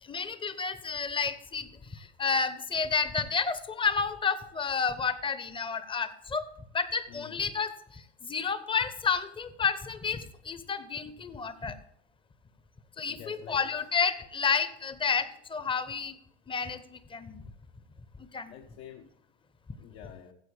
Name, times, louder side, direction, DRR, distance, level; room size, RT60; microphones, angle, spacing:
voice 1, 0.0-6.4 6.7-11.8 13.0-16.2 16.5-17.4 18.2-18.5, left 5 dB, 15° left, 13 dB, 0.9 m, -31 dB
voice 2, 7.1-7.4 13.1-13.9 18.5-19.1 19.8-20.3, left 9 dB, 65° left, 3 dB, 1.2 m, -48 dB
14.5 x 7.6 x 3.5 m, 0.74 s
hypercardioid pair, 95°, 33 cm